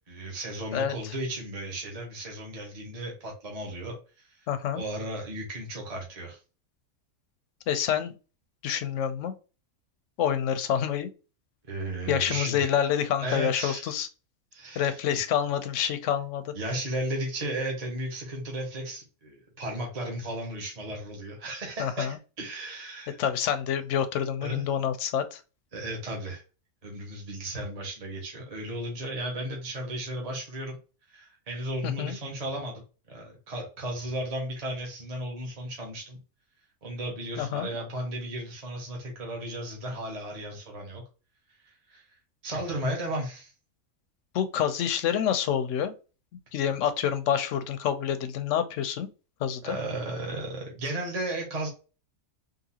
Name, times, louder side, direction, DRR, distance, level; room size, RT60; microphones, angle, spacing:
voice 1, 0.1-4.3 4.7-6.4 11.7-12.7 13.2-13.9 14.5-15.2 16.5-23.2 24.4-24.7 25.7-26.4 26.8-30.8 31.1-36.2 36.8-41.0 41.6-42.0 42.4-43.5 49.6-51.7, right 1 dB, 30° right, 1.0 m, -35 dB
voice 2, 0.7-1.1 4.5-4.8 7.7-8.1 8.6-9.3 10.2-11.1 12.1-14.1 14.8-16.5 21.8-22.2 23.2-25.4 31.8-32.1 37.4-37.7 44.3-45.9 46.5-49.1 49.4-49.8, left 9 dB, 65° left, 0.8 m, -27 dB
3.8 x 2.6 x 2.8 m
omnidirectional pair, 1.5 m